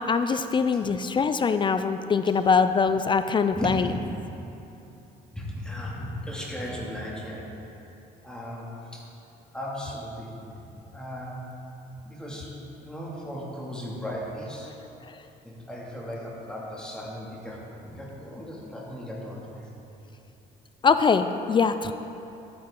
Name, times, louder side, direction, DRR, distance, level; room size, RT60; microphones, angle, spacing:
voice 1, 0.0-3.9 20.8-21.9, left 5 dB, 30° left, 10 dB, 0.4 m, -23 dB
voice 2, 3.5-4.0 5.2-7.5 8.2-9.0 9.5-10.6 10.9-11.4 12.0-12.5 12.8-14.7 15.2-19.7, equal, 5° left, -5 dB, 2.4 m, -36 dB
12.0 x 9.5 x 3.8 m, 2.8 s
cardioid pair, 110°, 17 cm